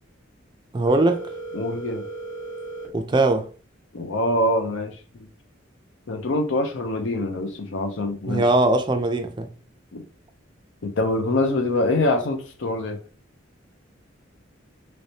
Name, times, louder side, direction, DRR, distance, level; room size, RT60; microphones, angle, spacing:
voice 1, 0.7-1.2 2.9-3.5 8.2-9.5, right 2 dB, 25° right, 0.4 m, -20 dB
Telephone, 0.9-2.9, right 3 dB, 20° left, 1.1 m, -35 dB
voice 2, 1.5-2.0 3.9-5.3 6.1-8.4 9.9-10.0 10.8-13.0, left 2 dB, 75° left, 0.6 m, -24 dB
3.2 x 3.1 x 2.7 m
head